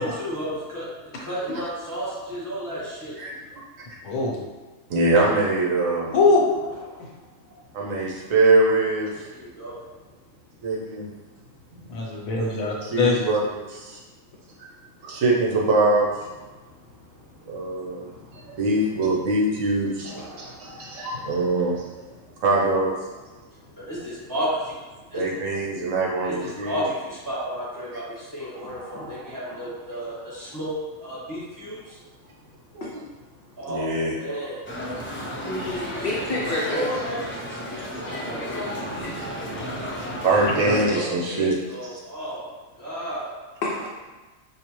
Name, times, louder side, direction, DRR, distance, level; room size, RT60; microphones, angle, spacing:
voice 1, 0.0-3.2 6.8-7.8 9.3-10.6 11.4-11.5 15.0-15.1 16.5-18.6 20.0-21.5 22.2-22.4 23.4-25.2 26.2-32.8 33.3-35.5 36.7-38.6 40.5-43.3, equal, 15° right, -10 dB, 1.4 m, -34 dB
voice 2, 4.0-4.4 6.1-6.4 7.0-7.1 11.9-13.2, left 3 dB, 85° left, -2 dB, 1.2 m, -21 dB
voice 3, 4.9-6.1 7.7-9.3 10.6-11.1 11.8-11.9 12.8-14.0 14.6-14.7 15.0-16.3 17.5-22.0 22.4-22.9 25.1-26.8 32.7-33.0 33.7-34.2 40.2-41.5 41.9-42.0, right 2 dB, 70° right, -3 dB, 1.1 m, -23 dB
sound 1, 34.6-40.9, equal, 20° left, 0.3 m, -33 dB
voice 4, 35.4-36.9 38.1-38.2 38.5-38.7 43.6-43.9, left 2 dB, 65° left, -3 dB, 0.6 m, -28 dB
5.0 x 2.1 x 3.0 m, 1.3 s
omnidirectional pair, 1.4 m